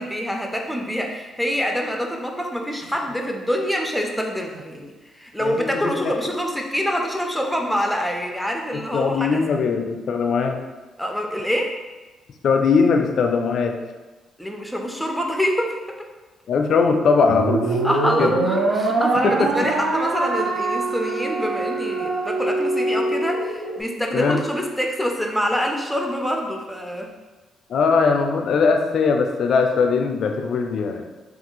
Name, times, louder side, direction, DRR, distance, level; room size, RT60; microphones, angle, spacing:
voice 1, 0.0-9.4 11.0-11.7 14.4-16.1 17.8-27.1, equal, ahead, 1 dB, 0.4 m, -26 dB
voice 2, 5.4-6.1 8.9-10.6 12.4-13.8 16.5-17.8 18.2-18.3 19.2-19.5 24.1-24.4 27.7-31.0, left 5 dB, 65° left, 5 dB, 0.3 m, -20 dB
sound 1, 17.3-23.8, right 2 dB, 80° right, 0.4 m, -23 dB
3.2 x 2.3 x 3.0 m, 1.2 s
cardioid pair, 90°, 0 cm